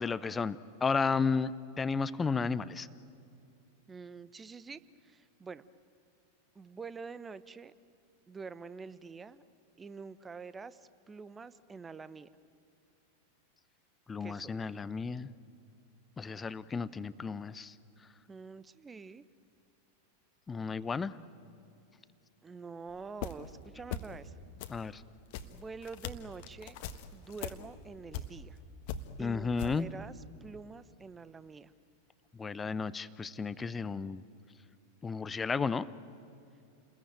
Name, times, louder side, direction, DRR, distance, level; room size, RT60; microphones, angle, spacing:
voice 1, 0.0-2.9 14.1-15.3 16.2-17.7 20.5-21.2 24.7-25.0 29.2-29.9 32.3-34.2 35.0-35.9, left 5 dB, 15° left, 17 dB, 0.7 m, -33 dB
voice 2, 3.9-5.6 6.5-7.7 8.3-9.4 9.8-12.3 14.2-14.6 18.3-19.2 22.4-24.4 24.7-24.9 25.4-26.8 27.1-28.6 29.2-31.7, right 4 dB, 15° right, 16 dB, 0.9 m, -46 dB
sound 1, 22.9-23.6 23.9-24.3 24.6-28.6 28.8-29.8, left 7 dB, 45° left, 1.5 m, -41 dB
30.0 x 21.0 x 9.1 m, 2.6 s
figure-of-eight pair, 90°, 0 cm